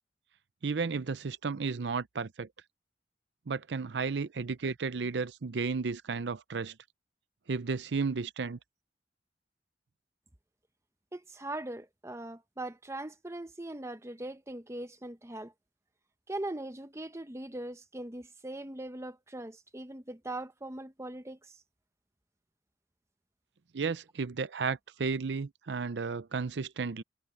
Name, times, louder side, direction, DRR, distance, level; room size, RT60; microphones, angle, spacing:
voice 1, 0.6-2.5 3.5-6.7 7.5-8.6 23.7-27.0, right 4 dB, 80° right, 0.6 m, -33 dB
voice 2, 11.1-15.5 16.3-21.5, right 1 dB, 15° right, 1.0 m, -40 dB
head